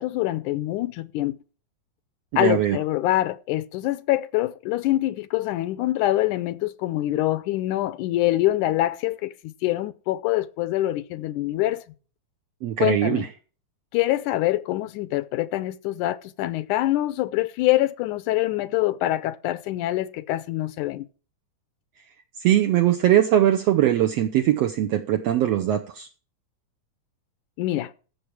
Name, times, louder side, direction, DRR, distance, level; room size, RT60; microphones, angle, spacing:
voice 1, 0.0-1.4 2.4-11.8 12.8-13.2 13.9-21.1 27.6-27.9, left 15 dB, 85° left, 2.2 m, -25 dB
voice 2, 2.3-2.8 12.6-13.3 22.4-26.1, right 12 dB, 70° right, 1.7 m, -21 dB
15.0 x 6.8 x 4.6 m
omnidirectional pair, 3.5 m